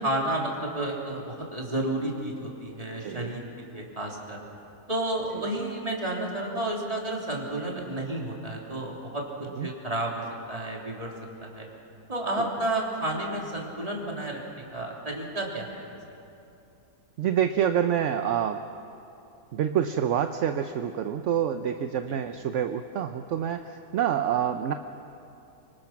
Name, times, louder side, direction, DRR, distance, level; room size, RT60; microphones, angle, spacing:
voice 1, 0.0-4.4 4.9-9.3 9.6-11.1 11.4-11.7 12.1-16.0 22.1-22.2, right 1 dB, 20° right, -2 dB, 3.5 m, -31 dB
voice 2, 3.0-3.4 9.6-9.7 12.4-12.5 17.2-18.6 19.5-24.7, right 9 dB, 60° right, 8 dB, 0.9 m, -27 dB
25.5 x 25.0 x 6.0 m, 2.8 s
omnidirectional pair, 1.7 m